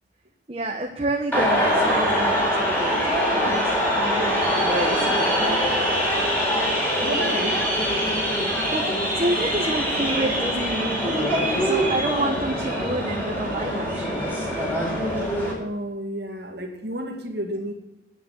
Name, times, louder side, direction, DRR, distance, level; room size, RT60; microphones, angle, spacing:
voice 1, 0.5-5.8 8.5-14.3, right 1 dB, 30° right, 0 dB, 1.1 m, -29 dB
sound 1, 1.3-15.5, equal, 10° left, 4.2 m, -23 dB
voice 2, 7.0-7.7 15.6-17.7, equal, 60° right, 2 dB, 2.3 m, -31 dB
9.7 x 9.4 x 7.5 m, 1.0 s
head